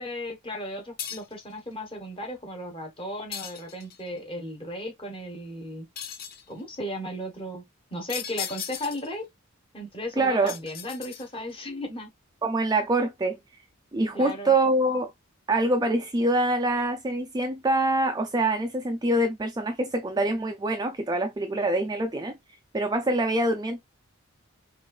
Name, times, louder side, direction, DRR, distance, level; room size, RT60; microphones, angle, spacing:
voice 1, 0.0-5.9 6.5-7.6 7.9-9.3 9.7-12.1 14.1-14.5, left 1 dB, 25° left, 1.2 m, -35 dB
sound 1, 1.0-1.4 3.3-4.1 6.0-6.5 8.1-9.1 10.5-11.5, left 8 dB, 45° left, 0.5 m, -37 dB
voice 2, 10.2-10.5 12.4-13.4 13.9-15.1 15.5-22.3 22.7-23.8, right 2 dB, 20° right, 0.4 m, -25 dB
5.4 x 2.5 x 2.4 m
head